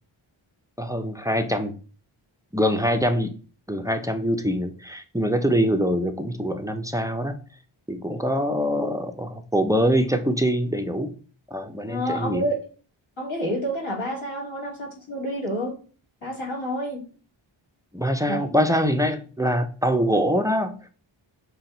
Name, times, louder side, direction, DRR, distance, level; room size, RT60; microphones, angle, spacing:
voice 1, 0.8-1.7 2.5-3.3 3.7-7.4 7.9-11.2 11.5-12.4 17.9-20.8, equal, 10° right, 7 dB, 0.4 m, -24 dB
voice 2, 11.9-12.6 13.2-15.7 16.2-17.0 18.3-18.4, equal, 70° left, -3 dB, 2.2 m, -29 dB
5.8 x 2.2 x 3.8 m, 0.38 s
wide cardioid pair, 65°, 48 cm